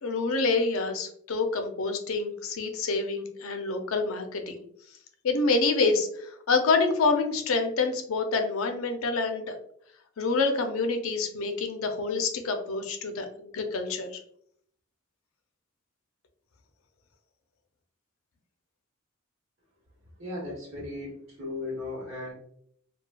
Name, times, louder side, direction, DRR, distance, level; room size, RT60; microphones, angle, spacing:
voice 1, 0.0-4.6 5.2-9.6 10.2-14.2, left 3 dB, 80° left, 6 dB, 0.5 m, -27 dB
voice 2, 20.2-22.3, left 2 dB, 60° right, -2 dB, 1.1 m, -36 dB
3.2 x 2.3 x 2.2 m, 0.65 s
head